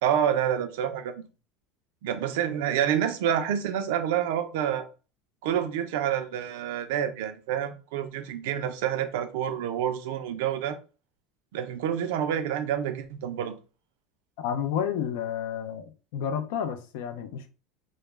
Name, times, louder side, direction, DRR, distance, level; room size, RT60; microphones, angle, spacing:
voice 1, 0.0-1.1 2.0-4.8 5.4-10.8 11.5-13.5, right 9 dB, 80° right, 0.4 m, -28 dB
voice 2, 14.4-17.5, left 8 dB, 75° left, 0.4 m, -31 dB
2.2 x 2.0 x 3.1 m
supercardioid pair, 135°, 0 cm